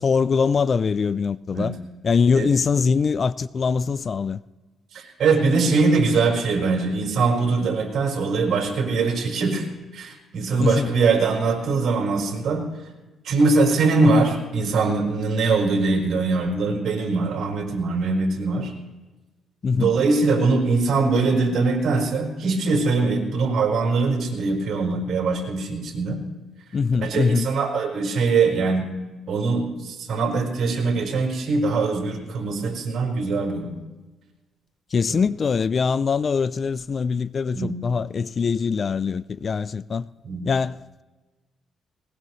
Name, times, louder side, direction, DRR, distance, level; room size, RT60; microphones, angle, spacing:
voice 1, 0.0-1.7 2.0-4.4 10.6-10.9 19.6-19.9 26.7-27.5 34.9-40.1 40.4-40.7, left 5 dB, 45° left, 0.4 m, -22 dB
voice 2, 4.9-9.7 9.9-12.6 13.2-18.7 19.7-26.2 26.9-28.9 29.3-33.7 35.1-35.2 37.5-37.8 40.2-40.5, right 3 dB, 65° right, 4.6 m, -22 dB
20.5 x 20.0 x 3.2 m
cardioid pair, 90°, 0 cm